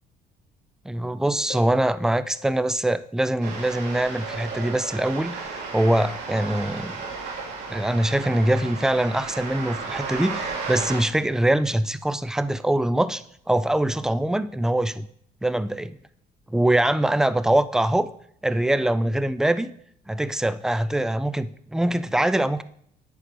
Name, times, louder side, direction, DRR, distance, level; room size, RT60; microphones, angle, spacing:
voice 1, 0.9-7.0 7.7-15.1 15.4-16.0 16.5-18.1 18.4-19.7 20.1-22.6, right 1 dB, 5° right, 15 dB, 0.4 m, -23 dB
Harp, 1.5-4.0 7.5-7.6, left 9 dB, 35° left, 1.0 m, -45 dB
sound 1, 3.4-11.0, right 4 dB, 80° right, 3.2 m, -34 dB
10.0 x 4.8 x 6.1 m, 0.68 s
cardioid pair, 110°, 17 cm